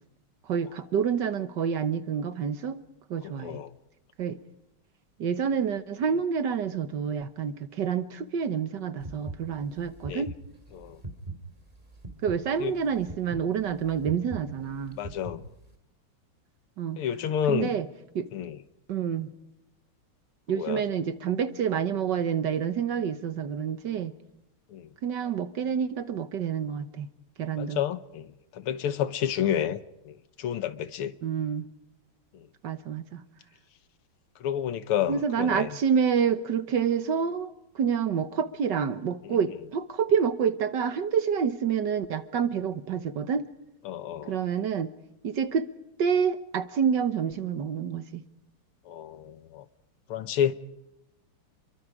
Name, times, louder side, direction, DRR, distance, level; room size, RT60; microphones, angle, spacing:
voice 1, 0.5-2.8 3.1-3.6 4.2-4.4 5.2-10.3 12.2-15.0 16.8-17.0 17.5-17.9 18.1-18.3 18.9-19.3 20.5-24.1 25.0-27.1 27.4-27.8 31.2-31.7 32.6-33.2 35.1-43.5 44.2-44.9 45.2-45.7 46.0-48.2, right 7 dB, 60° right, 1.6 m, -28 dB
voice 2, 3.2-3.7 10.1-10.2 10.7-11.0 12.6-12.7 15.0-15.4 17.0-17.7 18.3-18.6 20.5-20.8 24.7-24.9 27.6-28.3 28.5-29.8 30.1-31.2 34.4-35.7 39.3-39.4 43.9-44.3 48.9-49.7 50.1-50.5, left 9 dB, 85° left, 2.0 m, -30 dB
sound 1, 9.0-15.7, right 2 dB, 15° right, 2.2 m, -41 dB
30.0 x 23.0 x 4.9 m
omnidirectional pair, 2.4 m